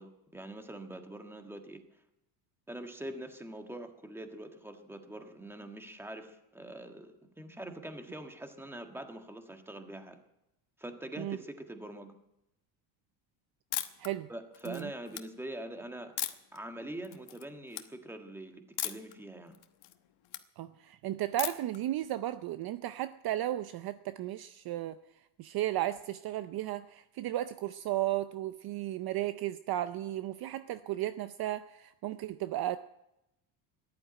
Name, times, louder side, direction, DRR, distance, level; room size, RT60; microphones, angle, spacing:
voice 1, 0.0-1.8 2.7-10.2 10.8-12.1 14.3-16.1 16.5-19.6, right 1 dB, 5° right, 5 dB, 1.6 m, -44 dB
sound 1, 13.7-14.1 14.5-15.2 16.2-16.6 17.0-17.4 17.7-17.9 18.8-19.1 19.5-20.4 21.4-21.8, left 13 dB, 55° left, 1.2 m, -36 dB
voice 2, 20.6-25.0 25.4-32.8, right 14 dB, 50° right, 12 dB, 0.6 m, -34 dB
14.0 x 11.5 x 8.9 m, 0.87 s
cardioid pair, 130°, 48 cm